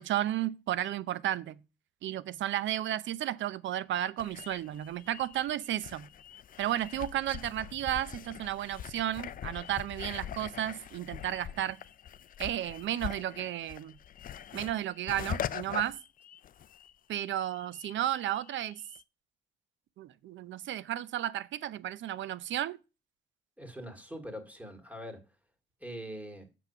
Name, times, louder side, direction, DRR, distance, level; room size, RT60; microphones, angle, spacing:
voice 1, 0.0-1.6 2.0-6.1 6.6-11.8 12.4-14.0 14.5-16.0 17.1-18.8 20.0-22.8, right 12 dB, 70° right, 0.6 m, -33 dB
sound 1, 4.2-16.9 17.2-19.0, left 10 dB, 45° left, 0.4 m, -43 dB
voice 2, 23.6-25.2 25.8-26.5, equal, 5° right, 2.2 m, -43 dB
7.1 x 5.9 x 5.8 m
cardioid pair, 90°, 20 cm